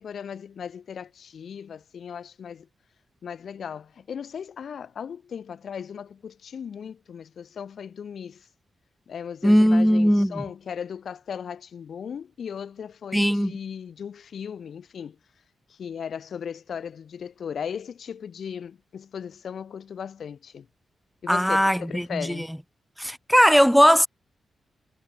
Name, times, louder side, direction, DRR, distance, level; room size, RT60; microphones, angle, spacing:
voice 1, 0.0-2.7 3.2-8.5 9.1-15.2 15.7-20.7 21.2-22.5, left 7 dB, 60° left, 4.8 m, -37 dB
voice 2, 9.4-10.4 13.1-13.5 21.3-22.5 23.0-24.1, equal, ahead, 0.5 m, -19 dB
wide cardioid pair, 140°, 0 cm